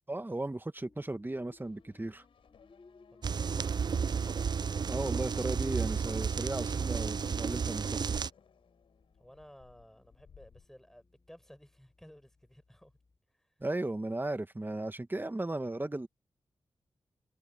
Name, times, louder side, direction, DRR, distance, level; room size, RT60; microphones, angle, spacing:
voice 1, 0.1-2.2 4.9-8.2 13.6-16.1, right 2 dB, 20° right, 1.6 m, -36 dB
sound 1, 0.8-13.2, left 3 dB, 45° left, 4.6 m, -63 dB
Race car auto racing / Accelerating revving vroom, 1.6-10.7, left 7 dB, 80° left, 4.8 m, -61 dB
voice 2, 3.1-4.2 9.2-12.9 13.3-13.5, equal, 5° left, 6.6 m, -56 dB
sound 2, 3.2-8.3, right 6 dB, 50° right, 0.4 m, -32 dB
supercardioid pair, 40°, 9 cm